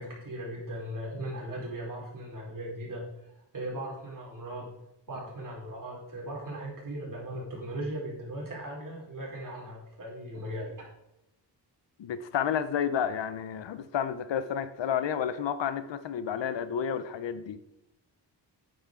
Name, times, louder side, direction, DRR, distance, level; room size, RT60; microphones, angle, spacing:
voice 1, 0.0-4.7 5.1-10.9, right 1 dB, 50° right, -3 dB, 4.5 m, -38 dB
voice 2, 12.0-17.6, left 8 dB, 85° left, 13 dB, 0.9 m, -31 dB
11.5 x 8.9 x 3.8 m, 0.86 s
wide cardioid pair, 135°, 43 cm